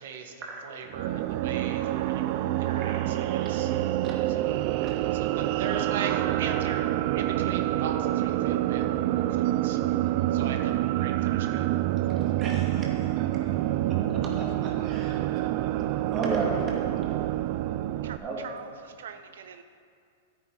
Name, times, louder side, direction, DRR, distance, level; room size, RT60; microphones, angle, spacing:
voice 1, 0.0-2.3 2.6-3.7 4.3-4.5 5.1-6.8 7.1-9.8 10.3-11.8, right 5 dB, 60° right, 4 dB, 1.1 m, -38 dB
sound 1, 0.9-18.2, right 14 dB, 35° right, 0.3 m, -27 dB
voice 2, 12.1-13.1 13.9-14.0 14.4-15.2 15.7-15.8 16.1-16.6 18.2-18.4, right 3 dB, 20° right, -2 dB, 2.0 m, -34 dB
voice 3, 18.4-19.6, right 7 dB, 85° right, 8 dB, 0.6 m, -43 dB
13.5 x 9.0 x 4.7 m, 2.3 s
supercardioid pair, 170°, 0 cm